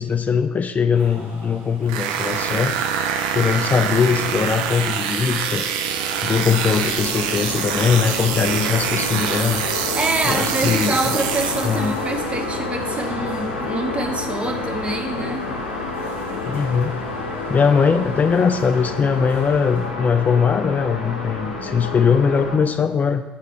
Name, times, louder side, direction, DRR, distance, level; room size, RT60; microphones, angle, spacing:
voice 1, 0.0-3.1 3.3-5.7 6.2-9.6 10.2-11.0 11.6-12.0 16.4-17.0 17.5-23.2, left 6 dB, 35° left, 9 dB, 0.3 m, -20 dB
sound 1, 0.9-19.9, right 2 dB, 50° right, 1.8 m, -43 dB
sound 2, 1.9-12.0, right 8 dB, 70° right, 0.4 m, -25 dB
sound 3, 5.5-22.6, left 2 dB, 90° left, 0.6 m, -29 dB
voice 2, 9.9-15.5, right 2 dB, 25° right, 4 dB, 0.9 m, -25 dB
7.5 x 6.5 x 3.2 m, 1.2 s
hypercardioid pair, 55°, 5 cm